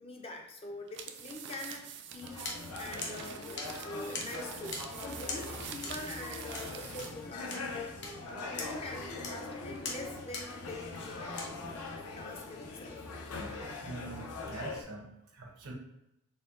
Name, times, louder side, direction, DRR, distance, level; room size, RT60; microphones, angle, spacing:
voice 1, 0.0-2.5 2.8-7.6 8.5-13.1, left 2 dB, 25° left, 2 dB, 0.4 m, -45 dB
sound 1, 0.9-7.2, right 8 dB, 55° right, 0.4 m, -46 dB
sound 2, 2.2-14.8, left 3 dB, 80° left, 0.6 m, -42 dB
sound 3, 2.4-11.5, left 3 dB, 50° left, 0.8 m, -44 dB
voice 2, 13.8-15.7, right 2 dB, 80° right, 0 dB, 0.9 m, -44 dB
4.3 x 2.1 x 3.7 m, 0.87 s
head